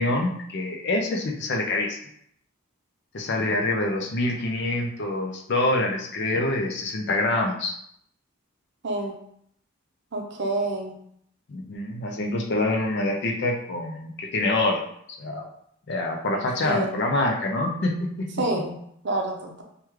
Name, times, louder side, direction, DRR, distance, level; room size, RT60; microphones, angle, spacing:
voice 1, 0.0-2.0 3.1-7.8 11.5-14.8 15.1-15.5 15.9-18.5, left 2 dB, 55° left, 1 dB, 0.5 m, -26 dB
voice 2, 8.8-9.1 10.1-10.9 16.6-16.9 18.4-18.8 19.0-19.6, right 2 dB, 50° right, 1 dB, 0.5 m, -27 dB
3.4 x 2.3 x 3.1 m, 0.70 s
head